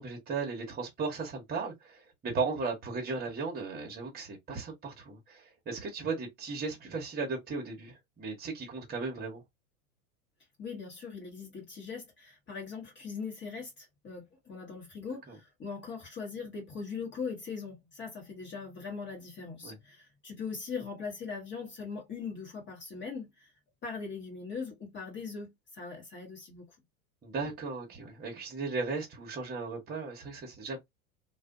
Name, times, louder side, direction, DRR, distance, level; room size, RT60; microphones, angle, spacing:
voice 1, 0.0-9.4 15.3-15.4 19.6-19.8 27.2-30.9, right 4 dB, 20° right, 1.0 m, -36 dB
voice 2, 10.6-23.5 23.8-26.7, left 5 dB, 25° left, 1.1 m, -40 dB
2.4 x 2.3 x 2.5 m
hypercardioid pair, 105°, 42 cm